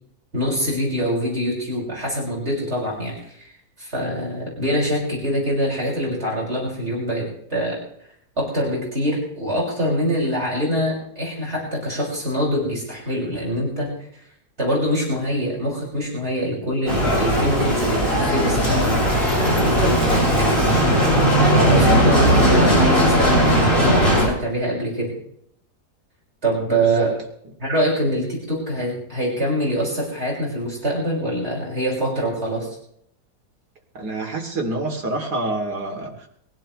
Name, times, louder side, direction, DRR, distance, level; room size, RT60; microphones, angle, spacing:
voice 1, 0.3-3.5 3.8-7.8 8.4-14.2 14.6-20.2 21.4-25.1 26.4-27.2 27.6-32.8, equal, 40° right, -4 dB, 6.6 m, -24 dB
Bicycle, 16.9-24.3, equal, 35° left, 7.3 m, -17 dB
voice 2, 34.0-36.3, right 2 dB, 85° right, 1 dB, 3.6 m, -27 dB
22.5 x 16.5 x 3.2 m, 0.69 s
omnidirectional pair, 1.7 m